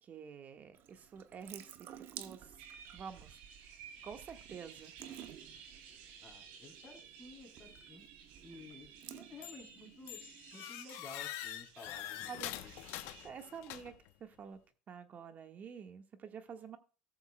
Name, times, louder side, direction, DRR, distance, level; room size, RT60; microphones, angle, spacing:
voice 1, 0.0-2.6 2.9-3.4 4.0-4.9 12.3-12.8 13.2-13.9 14.2-14.6 14.9-16.8, right 7 dB, 35° right, 7 dB, 1.5 m, -49 dB
Water tap faucet / Sink (filling or washing) / Drip, 0.7-10.5, right 10 dB, 50° right, 0.9 m, -54 dB
sound 1, 2.6-13.3, right 7 dB, 75° right, 2.5 m, -56 dB
voice 2, 6.2-8.0 8.4-10.2 10.5-12.7, left 2 dB, 20° left, 2 dB, 3.7 m, -54 dB
sound 2, 9.4-9.8 10.1-14.1, left 14 dB, 65° left, 0.9 m, -45 dB
18.0 x 7.0 x 2.3 m, 0.35 s
supercardioid pair, 105°, 5 cm